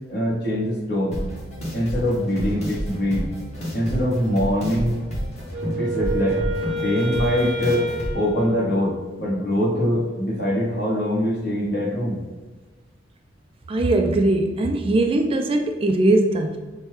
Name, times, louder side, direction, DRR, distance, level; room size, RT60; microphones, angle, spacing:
voice 1, 0.1-1.2 1.7-3.3 3.7-5.0 5.8-6.4 6.8-7.9 8.1-12.2, equal, 60° left, -3 dB, 1.2 m, -23 dB
sound 1, 1.1-8.1, equal, 40° left, 1.2 m, -30 dB
Wind instrument woodwind instrument, 5.5-9.4, equal, 85° right, 0.7 m, -29 dB
voice 2, 13.7-16.7, right 2 dB, 30° right, 4 dB, 0.3 m, -20 dB
5.4 x 2.2 x 3.1 m, 1.3 s
head